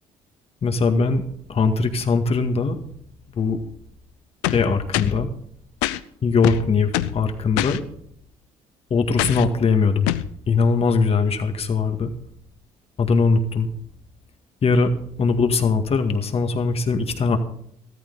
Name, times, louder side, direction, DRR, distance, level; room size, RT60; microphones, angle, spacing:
voice 1, 0.6-1.2 1.5-2.8 3.3-3.6 4.5-5.3 6.2-7.8 8.9-10.1 10.5-12.1 13.0-13.7 14.6-14.9 15.2-17.4, left 4 dB, 45° left, 7 dB, 2.0 m, -20 dB
sound 1, 4.4-5.2 5.8-6.0 6.4-7.2 7.6-7.8 9.2-9.5 10.1-10.3, left 15 dB, 90° left, 0.6 m, -24 dB
14.0 x 13.5 x 4.0 m, 0.67 s
supercardioid pair, 75°, 15 cm